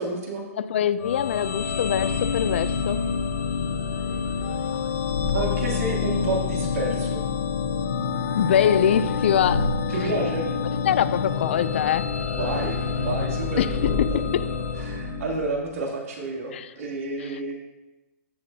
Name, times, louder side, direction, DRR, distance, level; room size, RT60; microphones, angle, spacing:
voice 1, 0.0-0.4 5.3-7.2 9.9-10.5 12.3-14.2 14.7-17.5, right 2 dB, 70° right, 2.7 m, -30 dB
voice 2, 0.6-3.0 8.4-9.7 10.9-12.1 13.6-14.5 16.5-16.7 17.3-17.5, left 9 dB, 45° left, 0.4 m, -23 dB
sound 1, 1.0-15.7, left 5 dB, 80° left, 0.9 m, -27 dB
14.0 x 7.0 x 2.8 m
hypercardioid pair, 180°, 8 cm